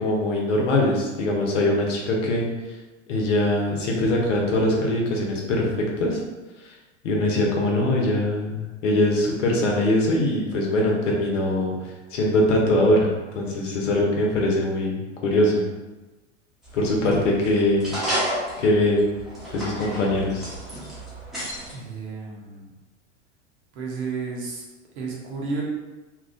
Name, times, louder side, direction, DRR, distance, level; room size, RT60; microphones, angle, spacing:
voice 1, 0.0-2.5 3.1-5.7 6.0-6.2 6.6-6.7 7.0-11.7 12.1-15.6 16.7-18.0 18.6-19.0 19.5-20.5, left 1 dB, 75° left, -1 dB, 0.9 m, -22 dB
sound 1, 16.6-21.7, right 1 dB, ahead, 0.8 m, -32 dB
voice 2, 21.7-22.7 23.7-24.6 25.0-25.6, right 4 dB, 60° right, -3 dB, 1.0 m, -32 dB
2.9 x 2.3 x 2.5 m, 1.1 s
hypercardioid pair, 100°, 38 cm